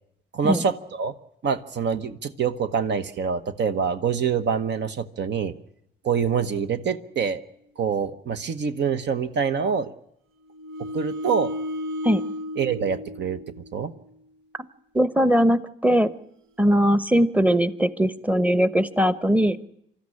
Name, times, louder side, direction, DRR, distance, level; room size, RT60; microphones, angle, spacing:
voice 1, 0.3-1.1 1.4-5.5 6.0-7.4 7.8-9.9 10.9-11.5 12.6-13.4 13.7-13.9, right 6 dB, 60° right, 10 dB, 1.1 m, -25 dB
sound 1, 10.5-14.0, left 1 dB, 85° right, 1.1 m, -34 dB
voice 2, 14.9-16.1 16.6-19.6, equal, 5° right, 13 dB, 1.0 m, -20 dB
25.0 x 13.5 x 9.8 m, 0.78 s
cardioid pair, 90°, 20 cm